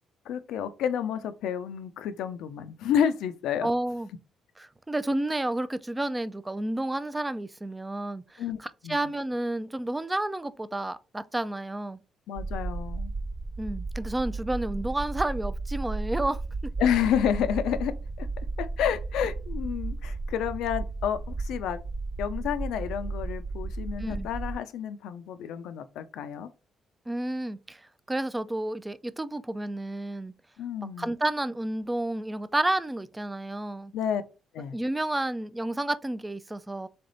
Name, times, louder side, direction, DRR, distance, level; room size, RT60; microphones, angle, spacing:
voice 1, 0.3-3.7 8.4-9.1 12.3-13.1 16.8-18.3 18.6-21.8 22.2-26.5 30.6-31.1 33.9-34.2 34.5-34.8, left 9 dB, 85° left, 0.5 m, -30 dB
voice 2, 3.6-4.1 4.6-12.0 13.6-16.4 24.0-24.3 27.1-30.3 31.0-33.9 34.7-36.9, right 1 dB, 15° right, 0.4 m, -31 dB
sound 1, 12.4-24.5, right 3 dB, 45° right, 1.2 m, -34 dB
3.8 x 3.4 x 3.9 m
cardioid pair, 90°, 0 cm